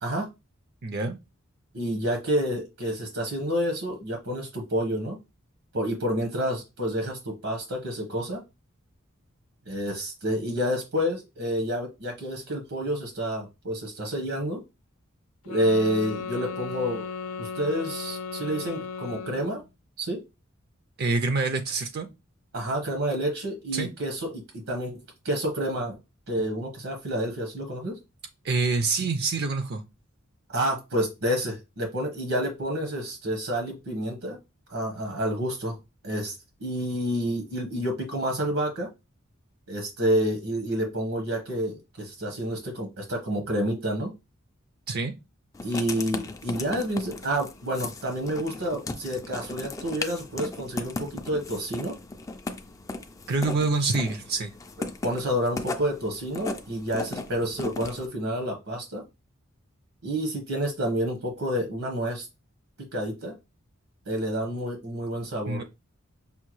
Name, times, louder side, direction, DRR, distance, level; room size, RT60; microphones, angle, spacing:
voice 1, 0.8-1.2 21.0-22.1 23.7-23.9 28.4-29.8 44.9-45.1 53.3-54.5 65.5-65.6, right 3 dB, 50° right, 0.4 m, -26 dB
voice 2, 1.7-5.2 5.7-8.4 9.6-14.6 15.4-17.1 17.4-19.6 20.0-20.2 22.5-24.9 25.2-26.0 26.3-28.0 30.5-34.4 34.7-35.8 36.0-36.3 36.6-38.9 39.7-44.1 45.6-51.9 54.8-59.0 60.0-62.3 62.9-63.3 64.1-65.6, equal, 75° right, 1.1 m, -29 dB
sound 1, 15.5-19.7, left 5 dB, 90° left, 0.6 m, -35 dB
Writing, 45.5-58.1, left 3 dB, 15° left, 0.3 m, -37 dB
5.5 x 2.2 x 3.1 m
head